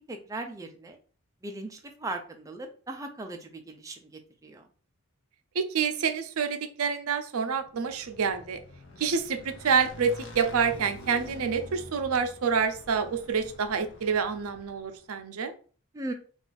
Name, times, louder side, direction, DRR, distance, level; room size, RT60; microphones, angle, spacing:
voice 1, 0.1-1.0 1.4-4.1 4.4-4.6 15.9-16.1, right 2 dB, 15° right, 3 dB, 0.4 m, -38 dB
voice 2, 5.5-8.6 9.0-15.5, right 6 dB, 75° right, 7 dB, 0.5 m, -27 dB
Motorcycle / Engine, 7.6-15.0, left 1 dB, 55° left, 0.6 m, -46 dB
2.5 x 2.4 x 3.8 m, 0.40 s
head